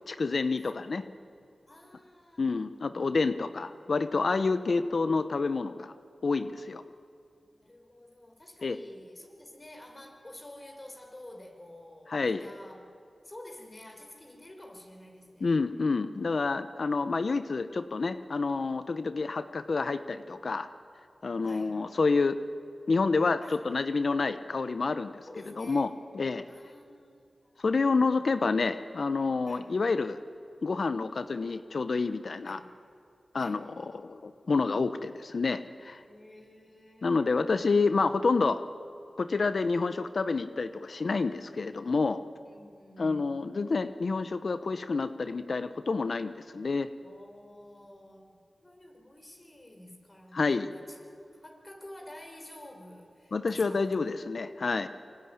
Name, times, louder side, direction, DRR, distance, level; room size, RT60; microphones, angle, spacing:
voice 1, 0.1-1.1 2.4-5.9 6.2-6.8 8.6-8.8 12.1-12.5 15.4-20.7 21.2-22.4 22.9-25.2 25.6-26.4 27.6-30.2 30.6-32.6 33.3-36.0 37.0-38.6 39.2-42.2 43.0-46.9 50.3-50.7 53.3-54.9, left 4 dB, 70° left, 11 dB, 0.9 m, -28 dB
voice 2, 0.6-1.0 1.7-2.6 3.8-3.9 7.5-12.9 13.2-15.6 21.4-21.8 23.4-23.8 25.3-25.9 26.4-27.6 29.5-29.8 32.4-32.7 33.4-33.6 36.0-37.5 42.4-43.4 47.0-54.2, left 1 dB, 35° left, 3 dB, 5.6 m, -50 dB
25.0 x 23.0 x 10.0 m, 2.5 s
cardioid pair, 45°, 0 cm